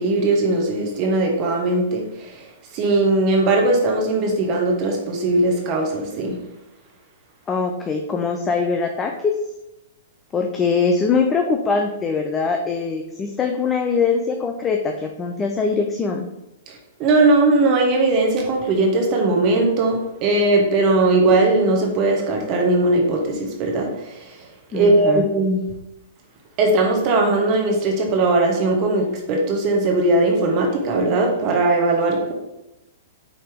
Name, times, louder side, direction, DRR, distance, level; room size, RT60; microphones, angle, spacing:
voice 1, 0.0-2.5 2.7-6.4 16.7-24.5 24.7-25.6 26.6-32.3, right 2 dB, 40° right, 1 dB, 0.9 m, -19 dB
voice 2, 7.5-9.3 10.3-16.3 24.7-25.3, left 5 dB, 20° left, 3 dB, 0.4 m, -22 dB
4.9 x 2.8 x 3.5 m, 0.92 s
hypercardioid pair, 115°, 0 cm